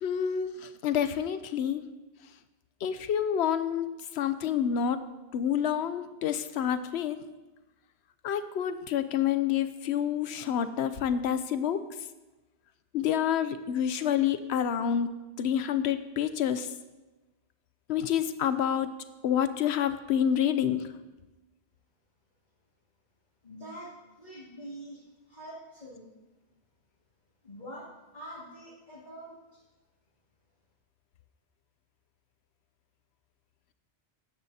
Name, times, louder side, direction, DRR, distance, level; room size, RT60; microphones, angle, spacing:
voice 1, 0.0-1.8 2.8-3.9 4.1-5.0 5.3-7.2 8.2-11.8 12.9-15.1 15.4-16.7 17.9-18.9 19.2-20.9, left 9 dB, 80° left, 12 dB, 0.9 m, -28 dB
voice 2, 23.4-26.1 27.4-27.9 28.1-29.6, right 1 dB, 45° left, -11 dB, 2.8 m, -45 dB
14.0 x 9.9 x 2.8 m, 1.1 s
omnidirectional pair, 1.1 m